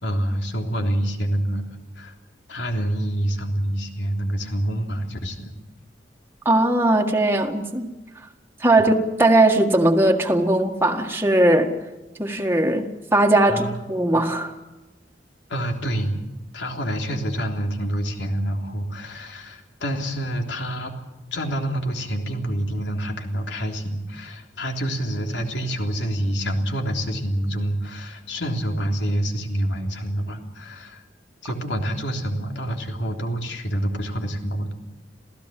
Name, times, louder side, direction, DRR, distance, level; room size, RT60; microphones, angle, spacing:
voice 1, 0.0-1.7 2.0-2.1 2.5-5.5 13.5-13.8 15.5-16.2 16.5-20.9 21.3-31.0 31.4-34.7, right 1 dB, 85° left, 3 dB, 3.4 m, -27 dB
voice 2, 6.4-7.9 8.6-11.7 12.2-14.5, right 1 dB, 15° right, 1 dB, 1.7 m, -19 dB
27.5 x 16.5 x 7.6 m, 1.1 s
head